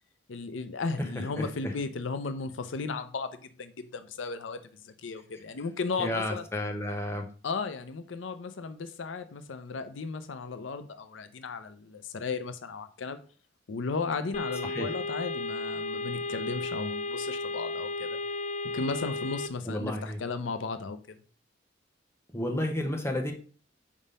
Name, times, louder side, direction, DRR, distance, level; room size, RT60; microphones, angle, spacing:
voice 1, 0.3-6.4 7.4-13.2 13.7-18.2 18.6-21.2, left 4 dB, 85° left, 0.6 m, -35 dB
voice 2, 1.0-1.7 6.0-7.2 14.6-14.9 19.7-20.2 22.3-23.3, left 1 dB, 15° left, 0.9 m, -32 dB
sound 1, 14.3-19.5, left 2 dB, 40° left, 0.4 m, -34 dB
4.9 x 3.7 x 5.4 m
head